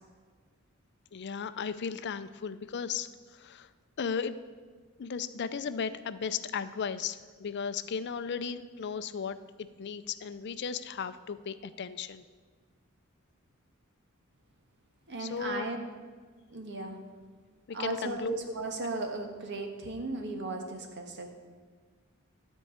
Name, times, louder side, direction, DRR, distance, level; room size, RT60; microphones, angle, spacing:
voice 1, 1.1-3.7 4.0-4.4 5.0-9.4 9.8-12.2 15.2-15.7 17.7-18.4, left 6 dB, 55° left, 13 dB, 0.5 m, -35 dB
voice 2, 15.1-15.8 16.5-17.0 17.7-21.3, right 2 dB, 55° right, 4 dB, 1.5 m, -36 dB
13.0 x 4.6 x 8.6 m, 1.5 s
head